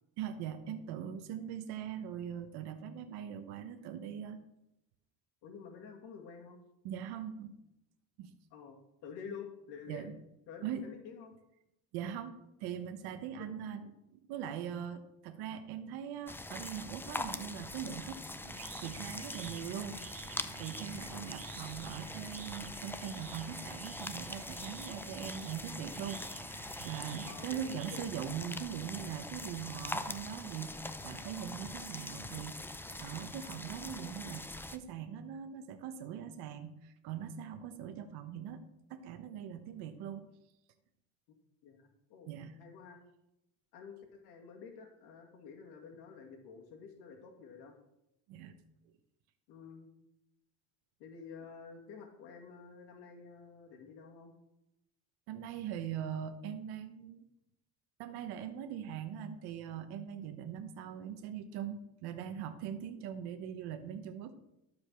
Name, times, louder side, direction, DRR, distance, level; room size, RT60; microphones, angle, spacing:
voice 1, 0.2-4.4 6.8-7.6 8.2-8.4 9.9-10.1 10.6-10.9 11.9-18.5 18.8-34.4 34.7-38.6 38.9-40.3 42.3-42.5 48.3-48.5 55.3-57.2 58.0-64.3, right 9 dB, 85° right, 8 dB, 1.0 m, -41 dB
voice 2, 5.4-6.6 8.5-10.1 10.5-11.3 13.4-13.5 21.1-21.4 27.3-28.1 37.9-38.0 41.6-42.3 42.6-43.0 43.7-47.7 49.5-49.9 51.0-54.3, left 6 dB, 85° left, 2 dB, 2.2 m, -50 dB
sound 1, 16.3-34.8, left 2 dB, 5° left, 0.5 m, -43 dB
sound 2, 18.1-28.4, right 9 dB, 40° right, 0.6 m, -51 dB
12.0 x 5.1 x 6.1 m, 0.85 s
cardioid pair, 115°, 37 cm